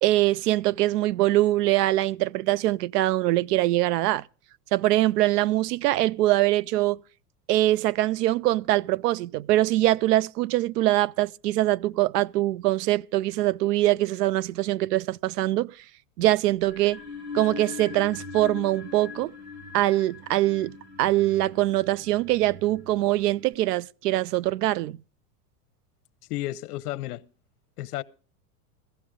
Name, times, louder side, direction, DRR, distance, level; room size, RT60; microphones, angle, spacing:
voice 1, 0.0-4.2 4.7-7.0 7.5-15.7 16.2-17.0 17.3-19.3 19.7-25.0, right 16 dB, 80° right, 0.6 m, -23 dB
sound 1, 16.6-23.5, left 5 dB, 30° right, 1.8 m, -41 dB
voice 2, 26.3-27.2 27.8-28.0, left 15 dB, 70° left, 0.9 m, -32 dB
16.0 x 13.5 x 3.7 m
supercardioid pair, 135°, 47 cm